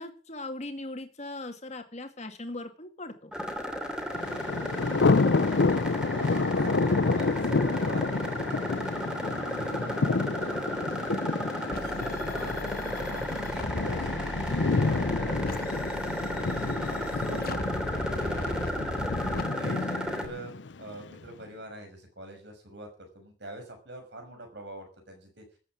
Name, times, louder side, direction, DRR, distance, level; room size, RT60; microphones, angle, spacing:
voice 1, 0.0-3.3, left 2 dB, 40° left, 6 dB, 2.1 m, -39 dB
sound 1, 3.3-20.3, equal, 5° right, 2.8 m, -34 dB
Thunder, 4.1-21.1, left 3 dB, 75° left, 0.7 m, -29 dB
voice 2, 5.3-19.2 19.6-20.5 20.8-25.6, right 1 dB, 65° right, 4 dB, 6.0 m, -45 dB
sound 2, 11.7-19.4, left 2 dB, 55° left, 1.2 m, -37 dB
14.0 x 8.5 x 8.6 m, 0.41 s
head